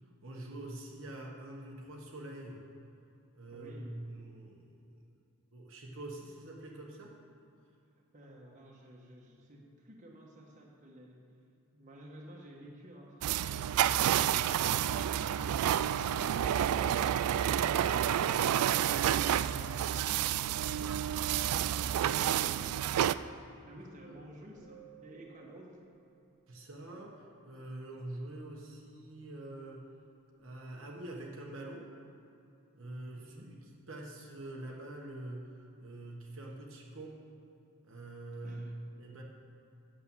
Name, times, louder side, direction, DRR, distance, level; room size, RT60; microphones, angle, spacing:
voice 1, 0.2-2.6 3.3-5.0 5.5-7.1 23.7-23.8 26.5-29.8 30.4-31.9 32.7-33.6 33.9-35.5 35.8-37.2 37.8-38.7 39.0-39.2, right 1 dB, 60° right, -2 dB, 1.2 m, -45 dB
voice 2, 3.5-4.0 8.1-11.2 11.7-20.4 23.6-25.8 33.1-33.5 38.4-38.8, right 1 dB, 35° right, -1 dB, 1.4 m, -53 dB
sound 1, 13.2-23.1, right 10 dB, 85° right, 0.3 m, -29 dB
sound 2, 24.6-26.8, right 12 dB, 5° right, 1.9 m, -59 dB
8.5 x 7.6 x 7.2 m, 2.7 s
head